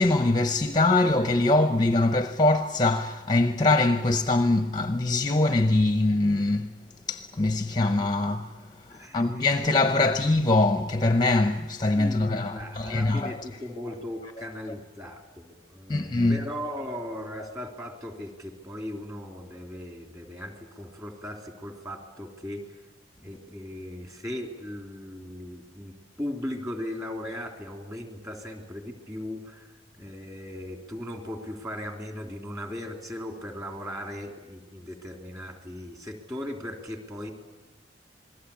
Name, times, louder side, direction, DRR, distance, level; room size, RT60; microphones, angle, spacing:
voice 1, 0.0-6.7 7.1-8.6 8.9-13.4 15.9-16.4, left 2 dB, 20° left, 0.7 m, -23 dB
voice 2, 8.9-9.5 11.9-22.8 23.2-29.7 30.0-37.3, left 1 dB, 20° right, 3.2 m, -38 dB
28.0 x 21.0 x 8.5 m
head